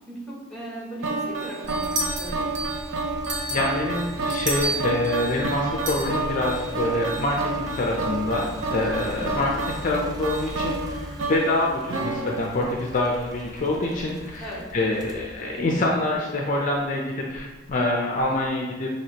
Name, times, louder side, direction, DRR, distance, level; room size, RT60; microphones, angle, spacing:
voice 1, 0.1-2.7 9.0-9.3 14.4-14.6, right 1 dB, 5° left, -5 dB, 1.2 m, -38 dB
sound 1, 1.0-13.2, right 3 dB, 85° right, 0.6 m, -30 dB
sound 2, 1.6-16.7 17.3-18.5, equal, 20° right, 0.5 m, -40 dB
sound 3, 1.7-2.8 3.2-5.2 5.8-6.1, right 1 dB, 65° right, 1.0 m, -30 dB
voice 2, 3.5-18.9, left 2 dB, 40° left, -1 dB, 0.5 m, -26 dB
5.9 x 2.8 x 2.9 m, 1.2 s
head